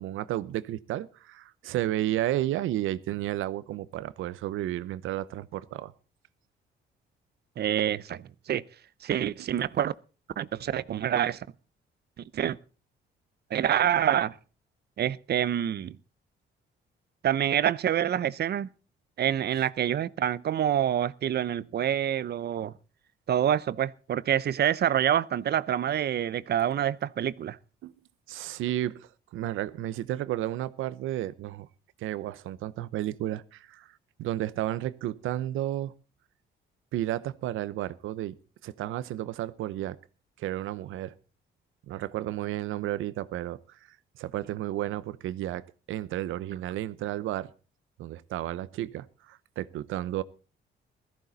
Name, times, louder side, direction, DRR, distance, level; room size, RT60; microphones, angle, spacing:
voice 1, 0.0-5.9 27.8-27.9 28.3-31.7 32.0-33.9 34.2-35.9 36.9-38.4 38.6-40.0 40.4-41.1 41.9-43.8 44.2-47.5 48.0-50.2, right 13 dB, 85° right, 0.8 m, -32 dB
voice 2, 7.6-8.6 9.0-9.9 10.4-11.5 12.2-12.6 13.5-14.4 15.0-16.0 17.2-18.7 19.2-22.7 23.3-27.6, right 10 dB, 55° right, 0.7 m, -27 dB
16.5 x 14.5 x 4.1 m
cardioid pair, 90°, 20 cm